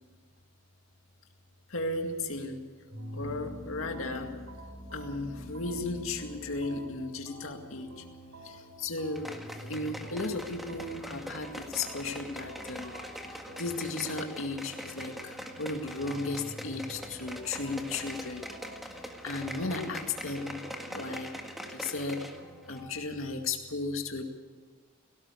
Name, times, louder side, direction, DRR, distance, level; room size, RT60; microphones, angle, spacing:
voice 1, 1.7-2.6 3.1-4.3 4.9-8.0 8.4-9.3 9.7-12.9 13.3-18.4 19.2-21.3 21.7-22.2 22.7-24.2, left 3 dB, 85° left, 4 dB, 2.1 m, -35 dB
sound 1, 2.9-22.9, equal, 85° right, 4.8 m, -47 dB
sound 2, 9.1-22.4 22.7-22.8, equal, ahead, 1.7 m, -43 dB
18.5 x 17.5 x 8.4 m, 1.4 s
head